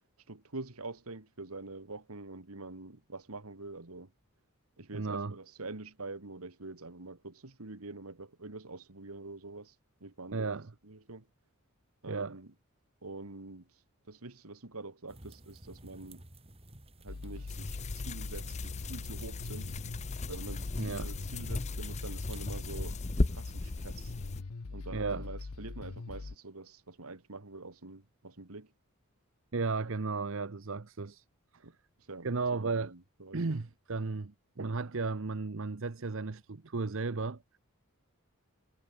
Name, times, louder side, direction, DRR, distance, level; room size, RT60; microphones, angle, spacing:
voice 1, 0.3-4.1 4.8-9.8 10.0-10.5 10.8-11.3 12.0-12.5 13.0-13.7 14.1-16.2 17.0-19.7 20.3-24.1 24.7-28.7 31.6-31.8 32.1-33.6, right 2 dB, 75° right, 2.0 m, -46 dB
voice 2, 4.9-5.4 10.3-10.7 12.1-12.4 20.8-21.1 24.9-25.3 29.5-31.2 31.5-31.7 32.2-32.9 33.3-37.6, right 4 dB, 60° right, 0.8 m, -34 dB
sound 1, 15.1-22.6, right 1 dB, 25° right, 3.0 m, -54 dB
sound 2, 17.1-26.4, left 3 dB, 80° left, 0.8 m, -42 dB
sound 3, 17.5-24.4, left 2 dB, 30° left, 0.8 m, -37 dB
head